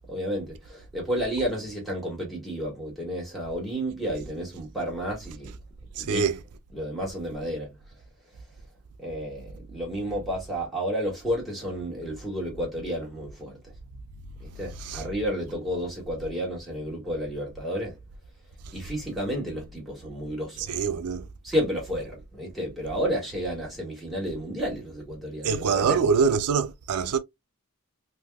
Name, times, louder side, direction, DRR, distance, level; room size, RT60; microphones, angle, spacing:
voice 1, 0.1-5.5 6.0-6.2 6.7-7.7 9.0-13.6 14.4-17.9 18.7-20.8 21.4-26.0, equal, ahead, 1.8 m, -31 dB
voice 2, 6.0-6.4 14.7-15.1 20.6-21.3 25.4-27.2, right 6 dB, 85° right, 0.4 m, -25 dB
3.5 x 2.7 x 2.2 m
head